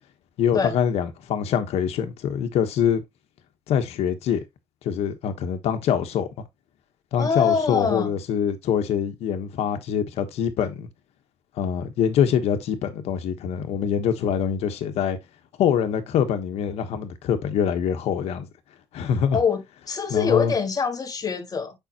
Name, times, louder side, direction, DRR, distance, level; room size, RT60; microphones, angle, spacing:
voice 1, 0.4-3.0 3.7-4.4 4.8-6.3 7.1-10.9 11.6-15.2 15.6-18.5 18.9-19.4 20.1-20.5, left 8 dB, 85° left, 1.2 m, -24 dB
voice 2, 7.2-8.1 19.3-21.7, left 6 dB, 35° left, 1.7 m, -24 dB
7.0 x 5.5 x 2.9 m
cardioid pair, 110°, 10 cm